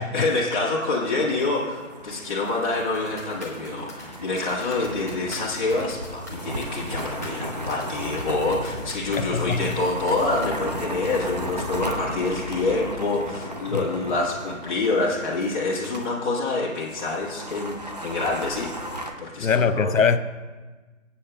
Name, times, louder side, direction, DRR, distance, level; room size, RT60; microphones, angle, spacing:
voice 1, 0.0-18.7 19.2-20.0, left 3 dB, 35° left, 1.5 m, -26 dB
sound 1, 0.9-16.1 16.3-16.4 16.8-19.1, right 1 dB, 30° right, 0.6 m, -35 dB
sound 2, 2.9-10.5, left 2 dB, 15° left, 0.7 m, -43 dB
sound 3, 8.0-13.0, left 3 dB, 10° right, 2.8 m, -40 dB
voice 2, 9.1-9.8 13.7-13.9 19.4-20.2, left 5 dB, 75° left, 0.7 m, -23 dB
23.0 x 8.5 x 2.2 m
figure-of-eight pair, 155°, 40 cm